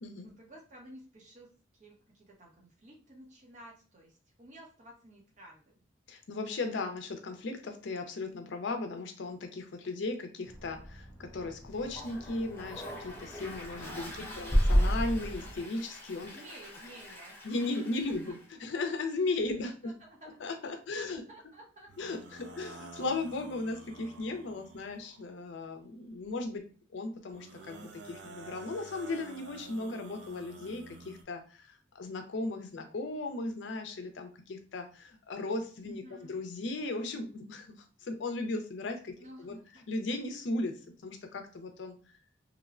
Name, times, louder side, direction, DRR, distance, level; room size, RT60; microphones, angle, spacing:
voice 1, 0.2-5.8 14.0-14.5 16.3-17.4 19.8-20.4 21.1-21.9 22.5-22.6 35.9-36.3 39.2-39.8, right 1 dB, 40° right, -1 dB, 0.8 m, -53 dB
voice 2, 6.1-16.4 17.4-19.9 20.4-21.2 22.0-26.6 26.9-37.8 38.0-39.1 39.4-39.6 39.9-40.7 41.0-42.2, left 2 dB, 65° left, 5 dB, 0.5 m, -36 dB
sound 1, 10.4-15.6, equal, 5° right, 0.5 m, -32 dB
Toilet flush, 11.7-18.5, left 1 dB, 10° left, 0.8 m, -46 dB
sound 2, 21.9-25.3 27.3-31.2, right 3 dB, 65° right, 0.5 m, -50 dB
3.0 x 2.0 x 2.4 m, 0.39 s
head